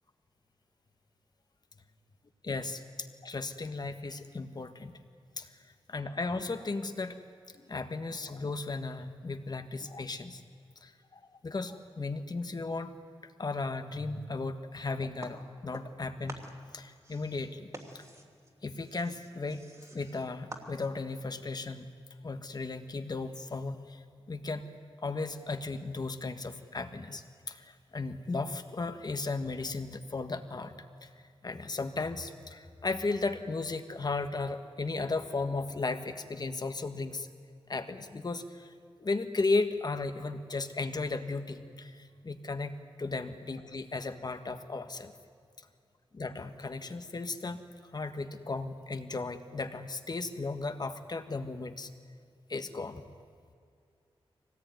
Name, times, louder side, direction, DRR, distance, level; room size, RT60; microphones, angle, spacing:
voice 1, 2.4-5.0 5.4-5.5 5.9-7.2 7.5-10.4 10.8-12.9 13.2-16.4 16.7-18.0 18.6-19.6 19.9-21.9 22.2-24.6 25.0-30.7 31.0-31.1 31.4-37.3 37.7-38.7 39.0-42.7 43.0-45.1 46.1-47.6 47.9-51.9 52.5-53.0, left 3 dB, 45° left, 8 dB, 1.5 m, -35 dB
sound 1, 15.2-16.0 16.3-21.1, right 2 dB, 30° right, 2.9 m, -48 dB
24.0 x 18.5 x 9.4 m, 2.3 s
wide cardioid pair, 100°, 10 cm